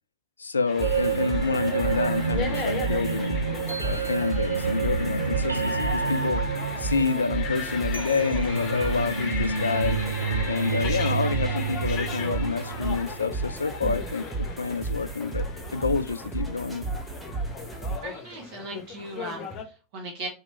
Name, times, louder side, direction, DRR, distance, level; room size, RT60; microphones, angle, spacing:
voice 1, 0.4-3.4 3.8-6.4 6.8-10.0 10.5-15.5 15.7-16.9, left 4 dB, 75° left, 0.3 m, -28 dB
sound 1, 0.7-19.6, left 5 dB, 35° left, 0.8 m, -37 dB
sound 2, 0.8-18.0, right 3 dB, 5° right, 1.1 m, -33 dB
sound 3, 0.8-13.8, right 5 dB, 80° right, 0.4 m, -29 dB
voice 2, 18.0-20.3, right 2 dB, 50° right, 1.5 m, -38 dB
4.0 x 3.0 x 4.3 m
figure-of-eight pair, 90°, 0 cm